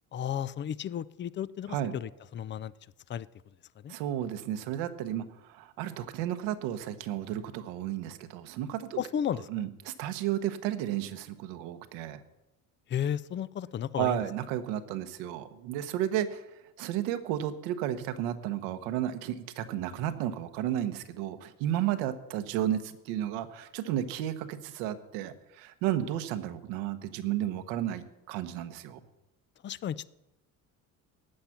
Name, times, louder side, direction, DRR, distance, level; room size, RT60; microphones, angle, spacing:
voice 1, 0.1-2.7 3.1-3.3 3.8-3.9 9.0-9.6 12.9-14.2 29.6-30.1, left 9 dB, 25° left, 20 dB, 0.4 m, -33 dB
voice 2, 3.9-9.0 9.3-12.2 14.0-16.4 16.8-29.0, right 11 dB, 75° right, 10 dB, 1.1 m, -33 dB
13.0 x 8.7 x 5.8 m, 0.97 s
hypercardioid pair, 70°, 45 cm